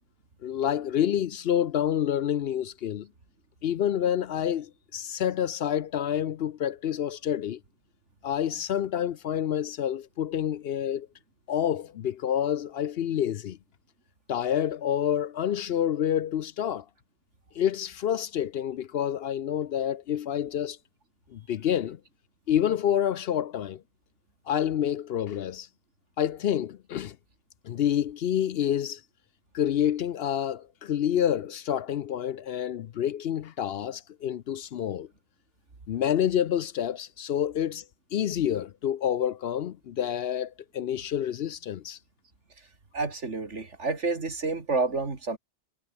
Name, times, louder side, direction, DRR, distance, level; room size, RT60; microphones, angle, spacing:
voice 1, 0.4-3.1 3.6-7.6 8.2-11.1 11.5-13.6 14.3-16.8 17.5-20.8 21.3-22.0 22.5-23.8 24.5-25.7 26.2-27.2 27.6-29.0 29.5-35.1 35.9-37.8 38.1-42.0, left 10 dB, 65° left, 0.8 m, -28 dB
voice 2, 42.9-45.4, right 3 dB, 80° right, 3.1 m, -29 dB
omnidirectional pair, 1.2 m